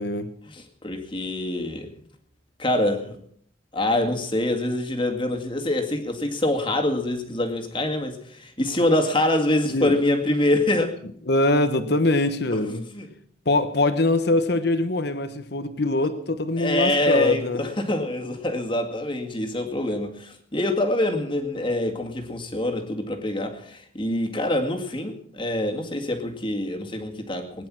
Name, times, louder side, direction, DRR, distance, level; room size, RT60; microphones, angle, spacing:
voice 1, 0.5-1.9 2.6-3.2 3.7-11.0 12.7-13.1 16.6-27.7, left 1 dB, 25° left, 3 dB, 2.1 m, -25 dB
voice 2, 11.3-12.8 13.4-17.6, left 2 dB, 55° left, 10 dB, 1.1 m, -23 dB
21.0 x 10.5 x 6.2 m, 0.62 s
head